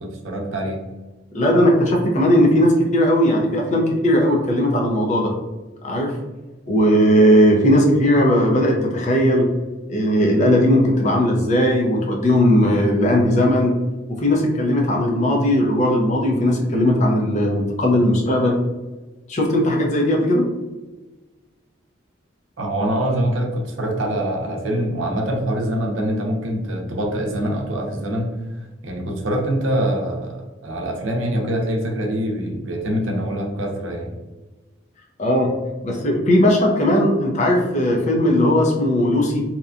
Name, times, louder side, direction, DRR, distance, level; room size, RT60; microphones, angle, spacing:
voice 1, 0.0-0.8 22.6-28.3 28.8-34.1, right 1 dB, 85° right, 1 dB, 0.6 m, -24 dB
voice 2, 1.3-5.3 5.8-6.1 6.7-9.5 9.9-13.7 14.1-18.6 19.3-20.5 35.2-35.5 35.8-39.4, equal, 40° left, 0 dB, 0.5 m, -17 dB
2.8 x 2.2 x 2.4 m, 1.2 s
head